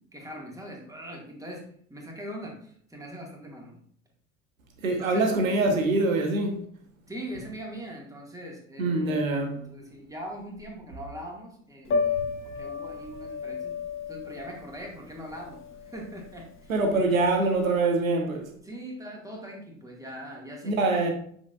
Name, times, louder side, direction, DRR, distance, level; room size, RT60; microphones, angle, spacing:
voice 1, 0.1-3.8 4.9-5.3 7.1-13.8 14.1-15.6 15.9-16.7 18.6-21.1, equal, 10° right, 2.1 m, -41 dB
voice 2, 4.8-6.6 8.8-9.6 16.7-18.5 20.6-21.1, right 2 dB, 75° right, 1.5 m, -24 dB
Piano, 11.8-17.8, left 5 dB, 30° left, 1.2 m, -33 dB
7.3 x 6.0 x 2.5 m
figure-of-eight pair, 70°, 41 cm